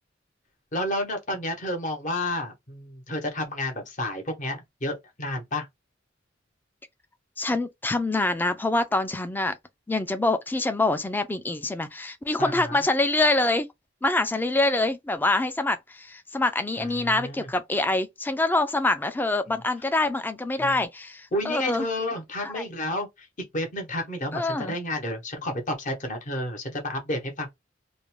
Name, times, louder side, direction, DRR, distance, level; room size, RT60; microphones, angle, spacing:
voice 1, 0.7-5.7 12.4-12.8 16.8-17.5 20.6-20.8 21.3-23.3 23.5-27.5, left 1 dB, 40° left, 0.8 m, -31 dB
voice 2, 7.4-9.6 9.9-13.7 14.0-21.9 22.4-22.6 24.3-24.8, left 2 dB, 10° left, 0.3 m, -25 dB
2.5 x 2.1 x 3.0 m
head